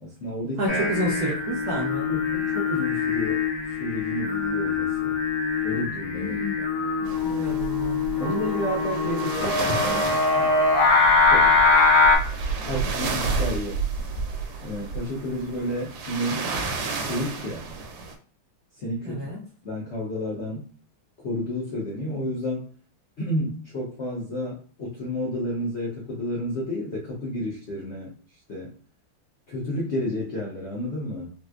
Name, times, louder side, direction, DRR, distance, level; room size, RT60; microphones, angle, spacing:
voice 1, 0.0-0.6 2.1-3.5 3.8-5.2 5.6-6.4 8.2-10.5 11.3-11.6 12.6-13.8 14.6-16.5 17.0-17.7 18.8-19.3 19.6-20.7 21.2-22.7 23.2-28.1 28.5-28.7 29.5-31.3, left 1 dB, 75° left, -4 dB, 0.6 m, -31 dB
voice 2, 0.6-2.2 6.1-6.5 7.2-8.2 19.0-19.4, right 1 dB, 60° right, -3 dB, 1.0 m, -30 dB
Singing, 0.7-12.2, left 4 dB, 50° left, 1.0 m, -23 dB
sound 1, 7.1-18.2, right 4 dB, 80° right, 1.5 m, -31 dB
4.2 x 2.2 x 2.4 m, 0.40 s
omnidirectional pair, 2.4 m